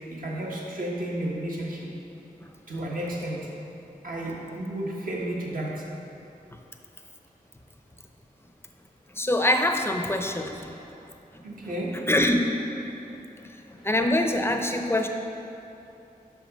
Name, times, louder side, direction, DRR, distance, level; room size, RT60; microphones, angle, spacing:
voice 1, 0.1-1.9 2.7-3.4 4.0-5.8 10.8-10.9 11.4-11.9, right 1 dB, 65° right, -4 dB, 1.3 m, -32 dB
voice 2, 9.2-10.7 12.1-12.4 13.8-15.1, left 1 dB, 15° left, 4 dB, 0.6 m, -24 dB
5.7 x 5.3 x 5.1 m, 2.8 s
wide cardioid pair, 60°, 15 cm